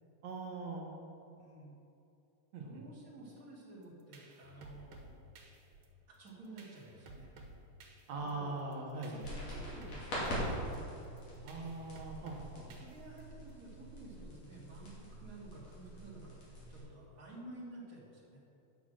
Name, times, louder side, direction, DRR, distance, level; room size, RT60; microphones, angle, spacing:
voice 1, 0.2-0.9 2.5-2.8 8.1-9.2 11.4-12.7, right 3 dB, 60° right, -1 dB, 2.3 m, -41 dB
voice 2, 1.4-1.7 2.6-5.2 6.1-7.3 8.1-10.8 12.6-18.4, right 2 dB, 30° right, -5 dB, 1.8 m, -52 dB
sound 1, 3.8-13.5, right 2 dB, 85° right, 2.8 m, -56 dB
sound 2, 9.2-16.8, equal, 50° left, 3.5 m, -43 dB
9.6 x 5.9 x 6.4 m, 2.8 s
omnidirectional pair, 4.1 m